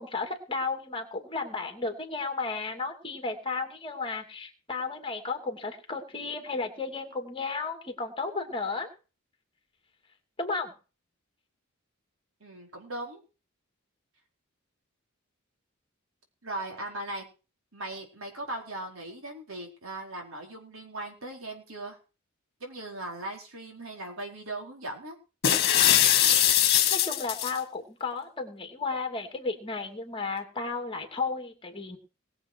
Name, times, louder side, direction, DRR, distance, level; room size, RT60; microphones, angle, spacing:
voice 1, 0.0-8.9 10.4-10.7 26.9-32.0, left 4 dB, 25° left, 4 dB, 2.8 m, -33 dB
voice 2, 12.4-13.2 16.4-17.3 17.7-22.0 22.6-25.2, right 2 dB, 75° right, 2 dB, 4.7 m, -38 dB
sound 1, 25.4-27.6, left 11 dB, 50° left, 1.9 m, -21 dB
21.0 x 7.6 x 4.7 m, 0.35 s
head